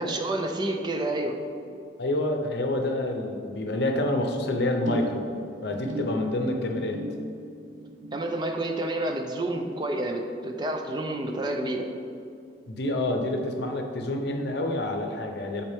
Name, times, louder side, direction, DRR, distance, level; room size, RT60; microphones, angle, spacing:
voice 1, 0.0-1.3 8.1-11.8, right 1 dB, 25° right, 3 dB, 0.4 m, -29 dB
voice 2, 2.0-5.3 5.6-7.0 12.7-15.6, left 1 dB, 60° left, 3 dB, 0.7 m, -28 dB
sound 1, 4.9-11.4 11.7-12.1 12.5-12.6, equal, 85° right, 0.9 m, -40 dB
8.0 x 4.3 x 3.5 m, 2.5 s
head